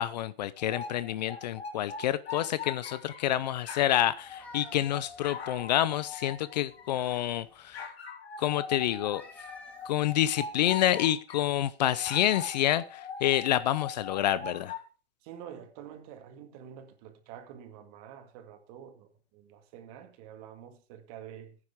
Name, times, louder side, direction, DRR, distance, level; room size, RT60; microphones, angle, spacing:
voice 1, 0.0-7.9 8.4-9.2 9.9-14.7, left 12 dB, 40° left, 0.6 m, -28 dB
sound 1, 0.6-3.3 3.6-7.3 7.7-11.5 11.9-14.9, left 5 dB, 75° left, 3.4 m, -42 dB
sound 2, 4.1-6.1 6.6-7.8 8.9-10.8, left 2 dB, 5° left, 2.2 m, -54 dB
voice 2, 15.2-21.6, right 9 dB, 35° right, 1.9 m, -47 dB
15.5 x 9.7 x 3.6 m
hypercardioid pair, 140°, 32 cm